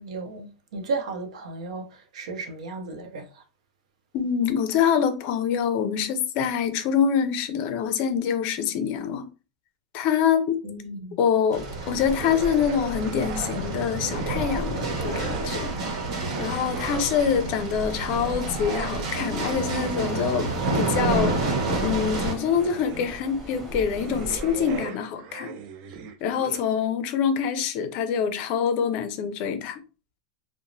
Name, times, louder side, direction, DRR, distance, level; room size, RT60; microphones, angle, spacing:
voice 1, 0.0-3.4 10.6-11.2, right 3 dB, 85° right, 0.7 m, -34 dB
voice 2, 4.1-9.3 9.9-10.6 11.2-15.7 16.4-21.5 21.8-25.6 26.2-29.8, left 7 dB, 45° left, 0.4 m, -25 dB
sound 1, 11.5-22.3, right 2 dB, 70° right, 1.0 m, -29 dB
sound 2, 12.2-14.8 15.1-17.5 18.0-26.6, right 6 dB, 40° right, 0.4 m, -39 dB
sound 3, 19.7-24.8, right 1 dB, 5° left, 1.1 m, -39 dB
2.9 x 2.0 x 2.6 m
supercardioid pair, 155°, 3 cm